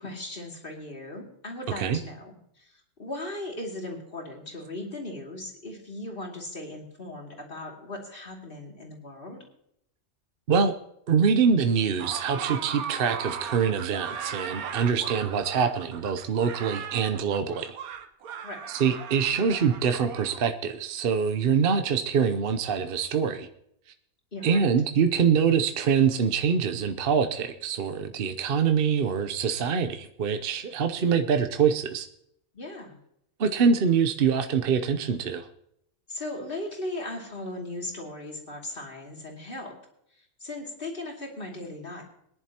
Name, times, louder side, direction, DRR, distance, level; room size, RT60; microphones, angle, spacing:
voice 1, 0.0-9.5 18.4-18.6 24.3-24.7 32.5-33.0 36.1-39.8 40.1-42.1, left 2 dB, 40° left, 0 dB, 2.8 m, -38 dB
voice 2, 11.1-17.7 18.7-23.5 24.4-32.1 33.4-35.5, right 6 dB, 50° right, 8 dB, 0.8 m, -24 dB
sound 1, 12.0-20.5, right 7 dB, 85° right, 1.4 m, -38 dB
21.5 x 10.5 x 2.9 m, 0.75 s
omnidirectional pair, 1.5 m